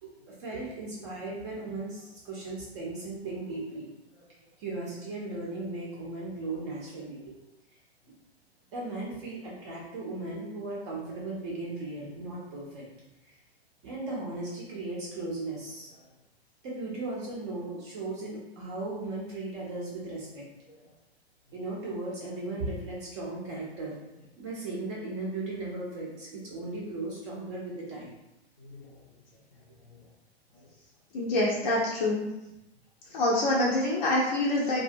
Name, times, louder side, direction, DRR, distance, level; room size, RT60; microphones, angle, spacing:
voice 1, 0.0-3.9 4.6-7.2 8.7-12.8 13.2-13.4 13.8-15.9 16.6-20.5 21.5-24.0 24.4-28.1, right 2 dB, 25° right, -4 dB, 0.5 m, -37 dB
voice 2, 28.6-28.9 31.1-32.3 33.1-34.8, left 1 dB, 40° left, -5 dB, 0.5 m, -26 dB
2.6 x 2.1 x 2.5 m, 0.92 s
figure-of-eight pair, 105°, 33 cm